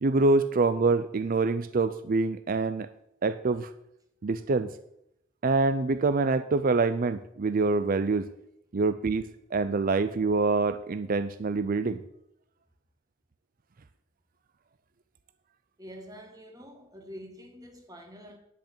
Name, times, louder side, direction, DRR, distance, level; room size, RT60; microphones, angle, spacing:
voice 1, 0.0-2.9 3.2-3.7 4.2-4.7 5.4-8.3 8.7-12.0, right 3 dB, 45° right, 12 dB, 0.5 m, -25 dB
voice 2, 15.8-18.4, equal, 20° right, 4 dB, 1.6 m, -46 dB
10.0 x 6.6 x 8.2 m, 0.79 s
head